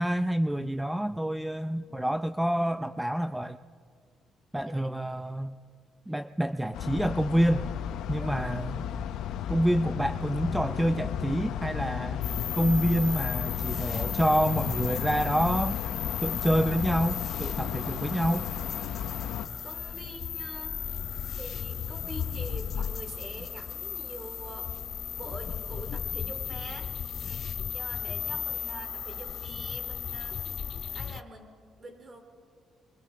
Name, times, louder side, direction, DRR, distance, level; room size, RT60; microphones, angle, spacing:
voice 1, 0.0-3.6 4.5-5.6 6.1-7.7 8.1-8.8 9.5-12.2 12.5-15.8 16.2-18.5, right 1 dB, 5° right, 11 dB, 0.5 m, -27 dB
sound 1, 6.7-19.5, left 9 dB, 85° left, 0.8 m, -34 dB
voice 2, 8.2-8.6 19.6-20.7 21.3-24.7 25.2-30.4 30.9-31.5 31.8-32.2, right 1 dB, 35° right, 4 dB, 4.2 m, -45 dB
sound 2, 12.2-31.2, left 8 dB, 60° left, 0.4 m, -35 dB
25.5 x 23.0 x 4.6 m, 2.1 s
cardioid pair, 90°, 0 cm